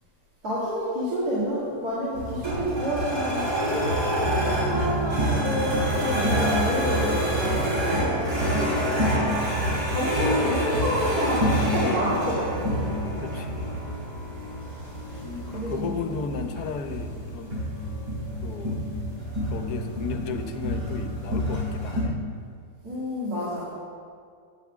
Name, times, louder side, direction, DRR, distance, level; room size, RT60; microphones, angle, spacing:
voice 1, 0.4-8.9 9.9-12.8 15.5-16.2 22.8-23.7, equal, 65° right, -10 dB, 2.7 m, -29 dB
sound 1, 2.1-22.0, equal, 90° right, 4.1 m, -27 dB
voice 2, 13.2-13.8 15.2-17.6 18.4-18.9 19.5-22.2, left 5 dB, 75° left, 7 dB, 1.3 m, -34 dB
10.5 x 5.8 x 7.3 m, 2.2 s
omnidirectional pair, 1.7 m